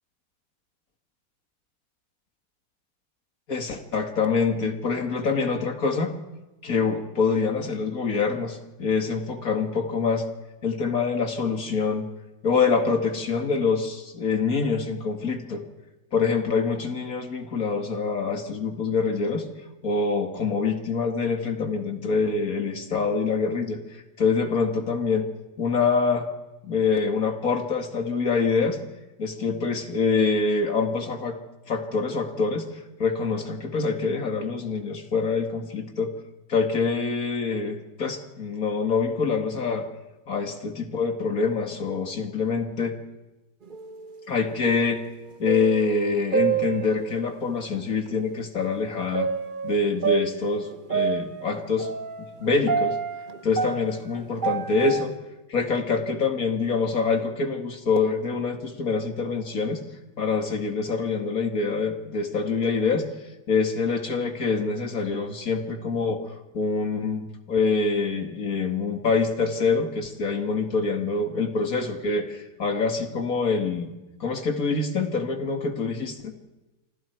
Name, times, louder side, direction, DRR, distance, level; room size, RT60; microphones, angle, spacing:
voice 1, 3.5-6.2 6.6-10.3 10.6-12.1 12.4-15.6 16.1-19.5 19.8-25.3 25.6-26.3 26.6-28.8 29.2-31.4 31.7-36.1 36.5-39.9 40.3-43.0 44.3-45.0 45.4-49.3 49.6-51.9 52.2-53.0 53.4-55.1 55.5-59.8 60.2-63.1 63.5-66.2 66.5-73.9 74.2-76.3, left 4 dB, 50° left, 5 dB, 2.3 m, -25 dB
sound 1, 43.7-44.2 44.5-47.3 48.1-48.2 49.1-55.1, right 6 dB, 30° right, 1.1 m, -28 dB
27.5 x 24.5 x 4.6 m, 1.0 s
omnidirectional pair, 2.0 m